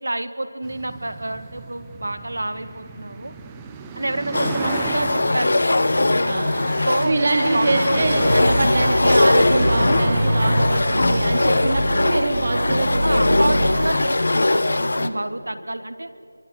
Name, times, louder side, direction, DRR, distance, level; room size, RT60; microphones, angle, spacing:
voice 1, 0.0-3.3 3.9-5.6 5.9-6.3 6.6-7.3 7.5-8.3 13.0-16.1, right 1 dB, 85° right, 10 dB, 1.9 m, -28 dB
sound 1, 0.6-14.1, right 5 dB, 10° right, 0.8 m, -35 dB
sound 2, 4.3-15.1, left 2 dB, 55° left, 1.2 m, -21 dB
voice 2, 7.0-13.8, right 2 dB, 40° right, 1 dB, 2.7 m, -24 dB
sound 3, 7.9-13.9, right 1 dB, 65° right, 2.8 m, -24 dB
25.0 x 23.0 x 7.9 m, 2.4 s
figure-of-eight pair, 175°, 0 cm